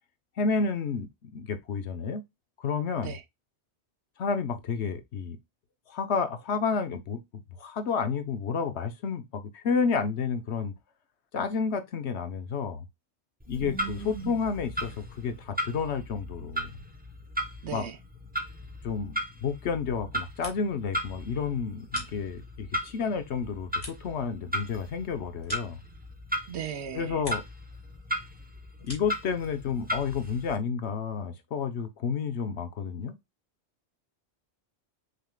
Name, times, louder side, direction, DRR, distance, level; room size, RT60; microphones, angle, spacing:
voice 1, 0.4-2.2 2.6-3.1 4.2-5.4 5.9-7.2 7.6-10.7 11.3-12.9 13.5-16.7 17.7-17.9 18.8-25.8 26.9-27.4 28.8-33.2, left 5 dB, 80° left, 1.1 m, -30 dB
Clock, 13.4-30.6, equal, 10° right, 0.8 m, -37 dB
voice 2, 13.6-14.4 17.6-18.0 26.5-27.2, right 8 dB, 80° right, 1.1 m, -37 dB
sound 1, 20.1-20.9 21.2-22.7 23.1-26.4 26.7-27.7 28.0-29.3, left 1 dB, 30° left, 2.0 m, -47 dB
6.6 x 3.4 x 2.3 m
omnidirectional pair, 1.1 m